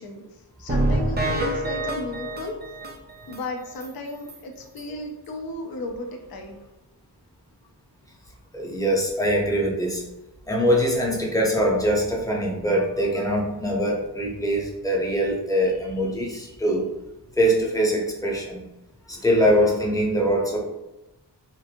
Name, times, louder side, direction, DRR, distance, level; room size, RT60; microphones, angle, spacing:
voice 1, 0.0-2.6 3.3-6.6, left 2 dB, 55° left, 3 dB, 0.5 m, -35 dB
sound 1, 0.7-3.4 3.8-3.9 4.3-4.4 4.8-4.9, right 1 dB, 25° right, 0.4 m, -26 dB
voice 2, 8.5-10.0 10.5-16.9 17.4-18.6 19.1-20.6, equal, 10° left, -1 dB, 0.7 m, -23 dB
2.9 x 2.5 x 2.4 m, 0.97 s
wide cardioid pair, 50°, 42 cm